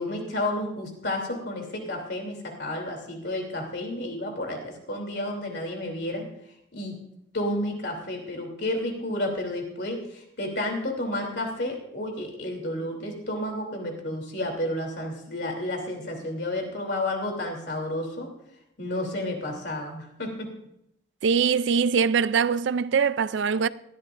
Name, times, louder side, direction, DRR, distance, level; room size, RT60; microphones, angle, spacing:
voice 1, 0.0-6.2 6.7-7.0 7.3-18.3 18.8-20.5, left 1 dB, 55° left, 3.0 m, -31 dB
voice 2, 21.2-23.7, right 6 dB, 65° right, 0.4 m, -22 dB
18.5 x 13.0 x 2.5 m
head